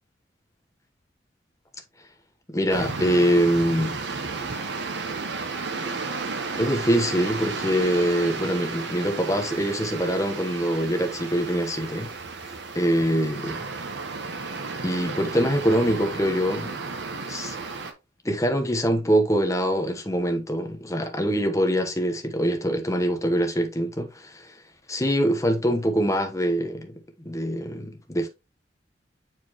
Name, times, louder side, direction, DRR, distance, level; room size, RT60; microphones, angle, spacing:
voice 1, 2.5-3.9 6.6-12.1 12.7-13.6 14.8-16.8 17.3-17.6 18.2-24.5 24.9-26.9 27.2-28.3, equal, 15° left, 1.1 m, -24 dB
sound 1, 2.7-17.9, right 4 dB, 60° right, 1.1 m, -33 dB
6.7 x 4.7 x 3.0 m
head